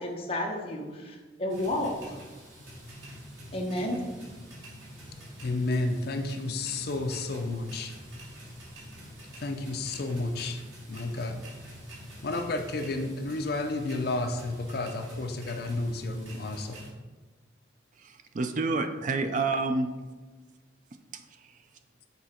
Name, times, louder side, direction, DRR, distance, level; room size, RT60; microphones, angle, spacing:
voice 1, 0.0-2.2 3.5-4.0, left 1 dB, 30° left, 0 dB, 0.9 m, -31 dB
sound 1, 1.5-16.9, equal, 90° right, 2.1 m, -46 dB
voice 2, 5.4-7.9 9.4-10.6 10.9-11.4 12.2-16.8, left 2 dB, 55° left, 6 dB, 0.5 m, -31 dB
voice 3, 18.0-19.9 20.9-21.6, right 3 dB, 40° right, 7 dB, 0.4 m, -30 dB
7.0 x 3.9 x 4.3 m, 1.3 s
head